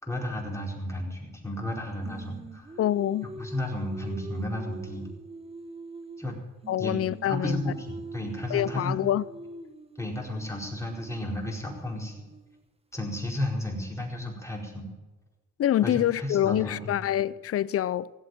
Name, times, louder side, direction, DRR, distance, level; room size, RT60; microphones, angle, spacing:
voice 1, 0.0-2.8 3.4-5.0 6.2-6.3 6.8-6.9 7.2-7.7 8.1-9.0 10.0-12.1 12.9-14.9 15.8-16.9, left 1 dB, 10° left, 4.6 m, -33 dB
Singing, 2.0-6.4 6.6-12.6, right 3 dB, 20° right, 1.5 m, -44 dB
voice 2, 2.8-3.3 6.7-7.6 8.5-9.3 15.6-18.1, left 12 dB, 50° left, 0.6 m, -26 dB
17.0 x 8.1 x 9.1 m
cardioid pair, 90°, 30 cm